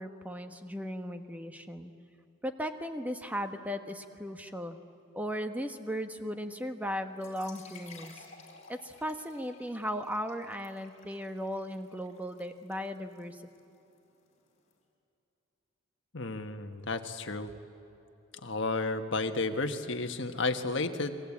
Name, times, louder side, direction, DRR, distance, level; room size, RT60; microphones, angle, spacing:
voice 1, 0.0-1.9 2.4-4.8 5.1-8.3 8.7-13.7, equal, 5° right, 7 dB, 1.2 m, -37 dB
sound 1, 7.1-14.7, left 4 dB, 35° left, 4.4 m, -56 dB
voice 2, 16.1-17.5 18.4-21.2, left 3 dB, 60° left, 6 dB, 1.5 m, -32 dB
29.5 x 22.5 x 8.6 m, 2.9 s
head